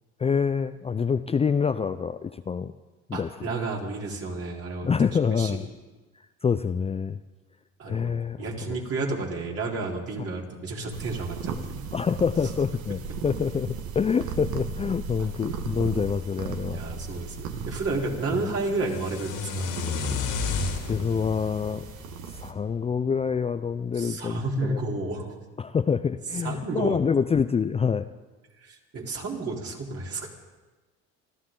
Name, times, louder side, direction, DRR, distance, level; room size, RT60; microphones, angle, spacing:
voice 1, 0.2-2.7 3.1-3.5 4.8-5.7 6.4-7.2 7.9-8.8 11.9-16.8 20.9-21.8 22.3-24.8 25.6-28.1, left 6 dB, 20° left, 11 dB, 0.4 m, -26 dB
voice 2, 3.1-4.9 5.2-5.6 7.8-8.1 8.4-11.9 16.7-19.7 23.9-25.3 26.4-27.0 28.6-30.3, right 3 dB, 50° right, -1 dB, 3.8 m, -31 dB
sound 1, 10.9-22.5, right 6 dB, 70° right, 1.7 m, -37 dB
sound 2, 18.8-22.9, left 5 dB, 80° left, 3.3 m, -32 dB
27.5 x 13.0 x 3.8 m, 1.2 s
supercardioid pair, 90°, 30 cm